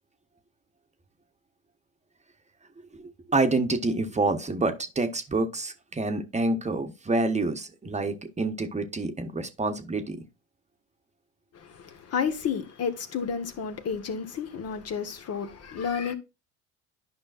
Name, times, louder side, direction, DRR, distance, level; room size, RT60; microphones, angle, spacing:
voice 1, 3.3-10.2, right 2 dB, 20° right, 1.1 m, -27 dB
voice 2, 11.5-16.1, left 6 dB, 45° left, 1.3 m, -31 dB
11.0 x 5.5 x 2.4 m
hypercardioid pair, 75°, 34 cm